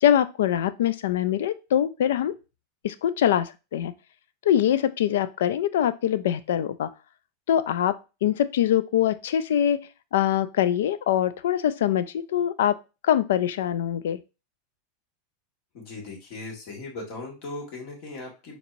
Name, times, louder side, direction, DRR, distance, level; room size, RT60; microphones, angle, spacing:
voice 1, 0.0-2.3 2.8-3.9 4.4-6.9 7.5-9.8 10.1-12.8 13.0-14.2, left 10 dB, 75° left, 14 dB, 0.3 m, -23 dB
voice 2, 15.7-18.6, left 2 dB, 60° left, 0 dB, 1.7 m, -38 dB
4.3 x 2.9 x 2.6 m, 0.29 s
hypercardioid pair, 105°, 0 cm